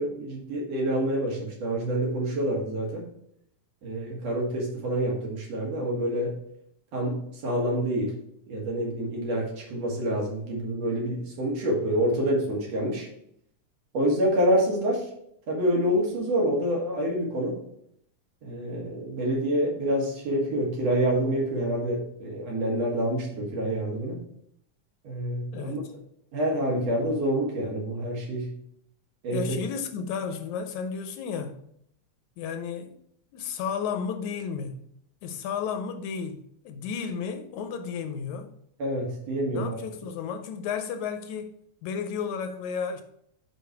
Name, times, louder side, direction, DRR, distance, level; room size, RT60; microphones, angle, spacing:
voice 1, 0.0-3.1 3.8-6.3 6.9-8.1 8.5-13.1 13.9-15.1 15.5-17.6 18.4-24.2 25.0-25.8 26.3-28.5 29.2-29.6 38.8-39.8, right 1 dB, 60° right, 2.6 m, -27 dB
voice 2, 25.5-26.0 29.3-31.6 32.4-32.9 33.3-34.9 35.2-38.6 39.5-41.5 41.8-43.0, left 6 dB, 80° left, 1.9 m, -33 dB
6.3 x 5.4 x 4.6 m
omnidirectional pair, 3.5 m